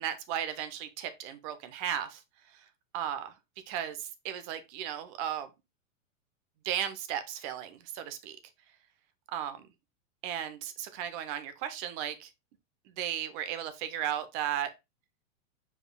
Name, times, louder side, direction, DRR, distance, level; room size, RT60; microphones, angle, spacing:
voice 1, 0.0-2.2 2.5-2.6 2.9-3.3 3.7-5.5 6.6-8.4 9.3-9.7 10.2-12.3 13.0-14.7, right 10 dB, 35° right, 0.7 m, -35 dB
4.9 x 4.7 x 2.2 m
hypercardioid pair, 135°, 40 cm